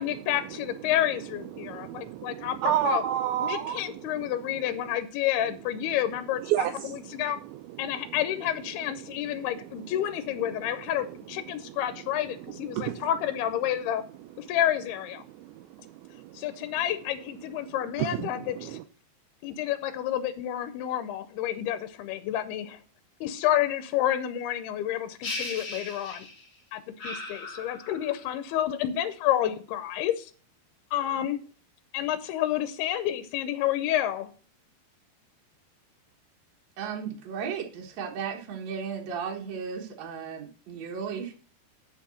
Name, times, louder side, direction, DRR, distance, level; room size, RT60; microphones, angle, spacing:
voice 1, 0.0-3.0 3.4-7.4 7.8-14.0 14.4-15.2 16.3-18.8 19.4-22.8 23.2-26.3 26.7-30.3 30.9-31.4 31.9-34.3, left 12 dB, 80° left, 10 dB, 2.4 m, -29 dB
voice 2, 1.6-4.3 6.5-7.0 12.7-13.0 15.4-16.4 18.0-18.8, right 11 dB, 85° right, 8 dB, 2.1 m, -30 dB
sound 1, 25.2-26.6 27.0-28.3, left 2 dB, 65° left, 0.9 m, -37 dB
voice 3, 36.8-41.3, right 6 dB, 65° right, 0 dB, 1.7 m, -35 dB
7.9 x 5.7 x 6.3 m, 0.40 s
omnidirectional pair, 5.0 m